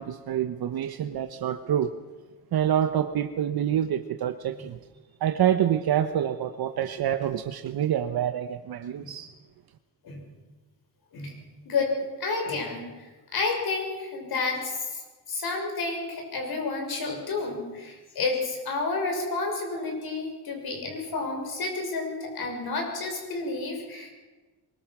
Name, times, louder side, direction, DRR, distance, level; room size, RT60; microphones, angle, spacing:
voice 1, 0.0-1.9 2.5-4.8 5.2-9.3, right 10 dB, 60° right, 8 dB, 1.0 m, -27 dB
voice 2, 11.1-15.0 15.3-24.1, left 3 dB, 60° left, 2 dB, 6.4 m, -30 dB
23.5 x 22.0 x 6.1 m, 1.2 s
cardioid pair, 140°, 42 cm